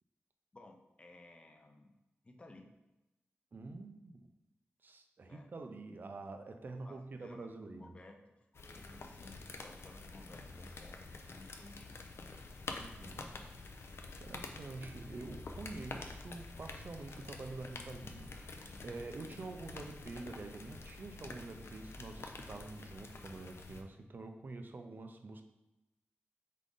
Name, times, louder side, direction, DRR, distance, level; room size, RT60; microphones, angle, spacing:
voice 1, 0.5-1.9 2.2-2.7 5.2-5.5 6.8-8.2 8.5-12.0 14.8-14.9, left 2 dB, 25° left, 3 dB, 0.5 m, -57 dB
voice 2, 3.5-4.2 4.8-7.9 12.8-13.9 14.2-25.4, right 3 dB, 50° right, 6 dB, 0.4 m, -47 dB
sound 1, 8.5-23.8, left 3 dB, 75° left, 0.4 m, -48 dB
3.7 x 3.7 x 3.7 m, 0.98 s
wide cardioid pair, 125°, 4 cm